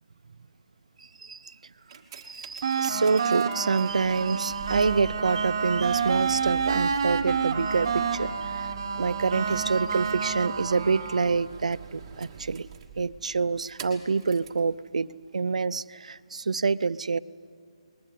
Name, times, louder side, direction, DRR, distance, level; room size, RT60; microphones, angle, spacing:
voice 1, 1.2-1.5 2.2-8.7 9.0-12.7 13.0-15.1 15.3-17.2, right 4 dB, 80° right, 16 dB, 0.5 m, -27 dB
sound 1, 1.7-14.7 15.4-15.5, right 6 dB, 15° right, 1.4 m, -44 dB
sound 2, 2.6-11.4, right 6 dB, 35° right, 1.2 m, -29 dB
20.5 x 20.5 x 8.4 m, 2.1 s
hypercardioid pair, 175°, 4 cm